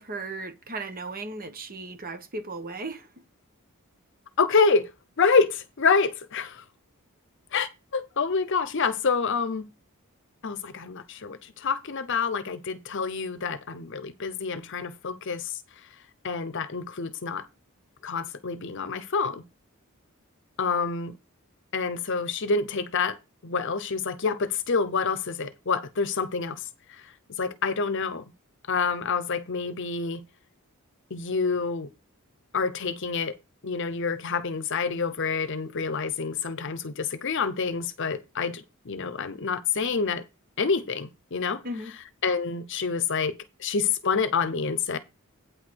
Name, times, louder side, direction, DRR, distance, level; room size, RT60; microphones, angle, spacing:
voice 1, 0.0-3.1 41.6-41.9, right 2 dB, 40° right, 1.2 m, -36 dB
voice 2, 4.4-4.9 5.2-6.6 7.5-9.7 10.4-15.6 16.2-17.5 18.0-19.4 20.6-21.2 21.7-23.2 23.4-28.2 28.7-30.2 31.1-31.9 32.5-33.3 33.6-40.2 40.6-41.6 42.2-45.0, left 5 dB, 55° left, 0.8 m, -27 dB
9.0 x 4.8 x 6.2 m
head